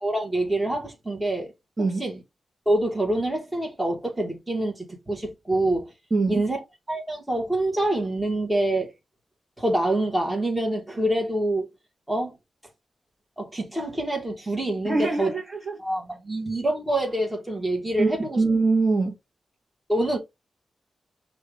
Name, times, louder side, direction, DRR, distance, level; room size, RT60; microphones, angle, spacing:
voice 1, 0.0-1.5 1.8-2.2 2.6-5.9 6.3-6.6 6.9-8.9 9.6-11.7 12.1-12.3 13.4-15.3 15.8-18.4 19.9-20.2, right 1 dB, 10° right, 1.7 m, -26 dB
voice 2, 6.1-6.4 14.8-15.8 18.0-19.2, right 3 dB, 30° right, 1.3 m, -23 dB
5.5 x 2.6 x 3.4 m
cardioid pair, 80°, 0 cm